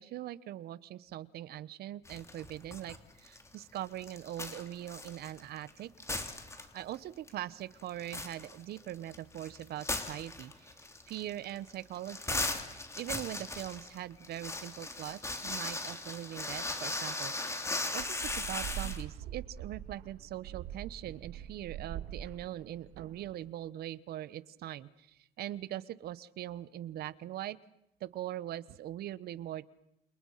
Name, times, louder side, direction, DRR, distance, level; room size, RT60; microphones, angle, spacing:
voice 1, 0.0-5.9 6.7-10.7 11.1-12.4 12.7-27.6 28.0-29.6, right 13 dB, 70° right, 18 dB, 1.1 m, -42 dB
sound 1, 2.0-3.0 3.3-5.7 6.0-7.0 7.3-7.4 7.8-19.0, left 2 dB, 15° left, 3.1 m, -38 dB
sound 2, 18.0-23.5, right 10 dB, 85° right, 1.9 m, -43 dB
29.0 x 27.5 x 5.7 m, 0.80 s
cardioid pair, 110°, 17 cm